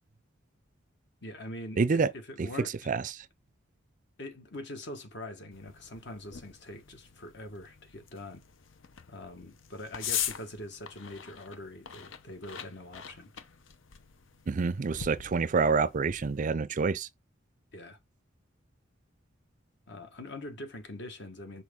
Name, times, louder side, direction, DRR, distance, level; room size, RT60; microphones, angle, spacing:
voice 1, 1.2-2.9 4.2-8.4 9.1-13.3 17.7-18.0 19.9-21.6, left 1 dB, 60° left, 1.6 m, -43 dB
voice 2, 1.8-2.1 2.4-2.5 2.9-3.2 14.5-17.1, right 4 dB, 40° right, 0.4 m, -27 dB
sound 1, 5.5-16.5, left 9 dB, 80° left, 0.8 m, -42 dB
6.3 x 4.2 x 3.7 m
head